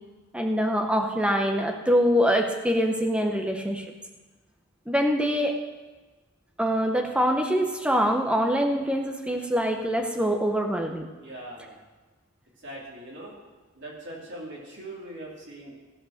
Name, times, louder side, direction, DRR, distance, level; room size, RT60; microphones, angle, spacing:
voice 1, 0.3-3.8 4.9-5.6 6.6-11.1, equal, 5° right, 3 dB, 1.0 m, -24 dB
voice 2, 11.2-11.8 12.6-13.3 13.7-15.7, right 1 dB, 55° right, -4 dB, 3.2 m, -41 dB
15.5 x 5.5 x 6.6 m, 1.3 s
head